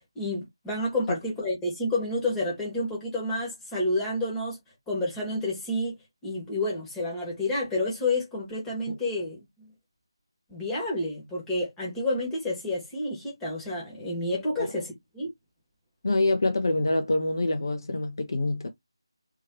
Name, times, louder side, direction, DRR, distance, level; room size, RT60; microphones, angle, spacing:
voice 1, 0.1-4.6 4.9-6.0 6.2-9.7 10.5-15.3, left 1 dB, 10° left, 1.7 m, -29 dB
voice 2, 16.0-18.7, left 2 dB, 50° left, 0.7 m, -26 dB
3.8 x 3.1 x 2.8 m
figure-of-eight pair, 160°, 3 cm